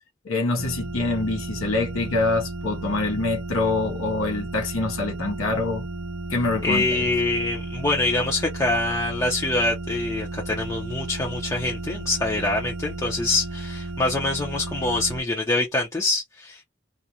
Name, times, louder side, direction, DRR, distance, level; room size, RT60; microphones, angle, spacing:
voice 1, 0.2-5.9 6.3-7.0, left 2 dB, 85° left, 0.8 m, -25 dB
sound 1, 0.6-15.2, right 2 dB, 60° right, 0.5 m, -34 dB
voice 2, 6.6-16.6, left 2 dB, 15° left, 0.6 m, -25 dB
2.4 x 2.1 x 2.8 m
head